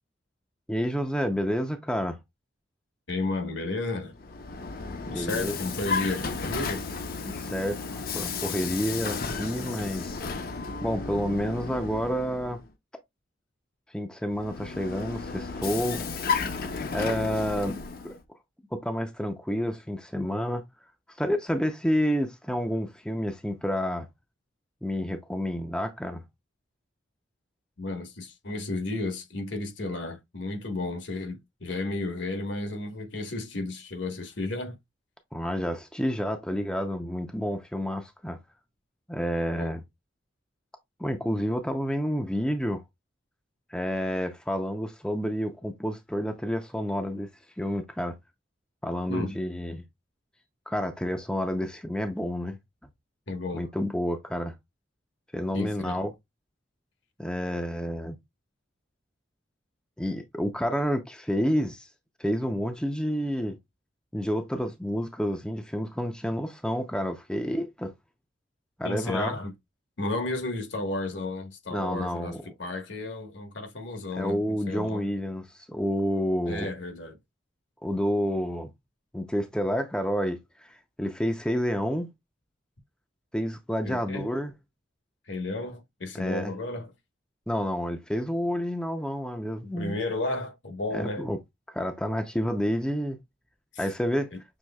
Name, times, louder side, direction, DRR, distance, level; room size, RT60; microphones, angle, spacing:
voice 1, 0.7-2.2 5.1-5.6 7.2-10.2 10.8-12.6 13.9-16.0 16.9-17.8 18.0-18.1 18.7-20.6 21.1-24.1 24.8-26.2 35.3-38.4 39.1-39.8 41.0-42.8 43.7-47.3 47.6-48.2 48.8-49.8 50.7-52.6 53.5-54.5 55.3-56.1 57.2-58.2 60.0-61.9 62.2-63.6 64.1-67.9 68.8-69.4 71.7-72.4 74.2-76.7 77.8-78.7 79.1-82.1 83.3-84.5 86.1-86.5 87.5-90.0 90.9-91.4 91.7-93.2 93.8-94.3, equal, 5° left, 0.5 m, -29 dB
voice 2, 3.1-4.1 5.0-6.8 27.8-34.8 39.5-39.7 49.1-49.3 53.3-53.7 55.5-56.0 68.8-69.5 70.0-75.1 76.5-77.2 83.8-84.3 85.3-86.9 89.6-91.3 93.7-93.9 94.3-94.4, left 2 dB, 75° left, 1.2 m, -33 dB
Vehicle, 4.1-12.6 14.3-18.2, left 4 dB, 50° left, 0.6 m, -33 dB
6.2 x 3.2 x 2.2 m
head